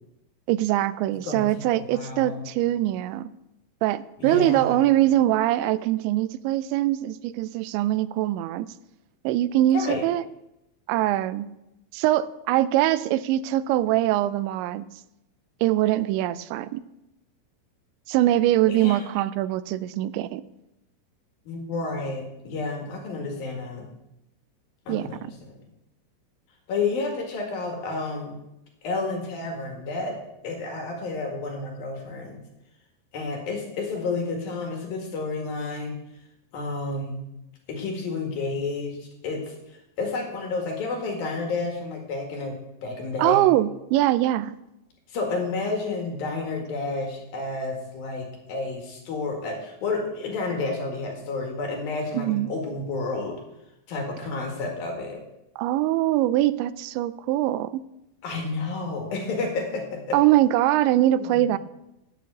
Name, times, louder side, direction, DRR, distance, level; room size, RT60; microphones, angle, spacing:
voice 1, 0.5-3.3 3.8-8.7 9.2-10.2 10.9-11.5 11.9-14.8 15.6-16.8 18.1-20.4 24.9-25.3 43.2-44.6 52.1-52.5 55.6-57.8 60.1-61.6, right 14 dB, 85° right, 16 dB, 2.8 m, -23 dB
voice 2, 1.2-2.5 4.2-4.9 9.7-10.0 18.7-19.1 21.5-23.9 24.9-25.2 25.5-25.6 26.7-28.4 28.8-30.2 30.4-32.4 33.1-36.0 36.5-37.3 37.7-42.6 42.8-43.5 45.1-53.4 53.9-55.2 58.2-60.2 61.1-61.5, left 3 dB, 60° left, 2 dB, 3.4 m, -30 dB
9.2 x 8.5 x 8.0 m, 0.87 s
omnidirectional pair, 5.2 m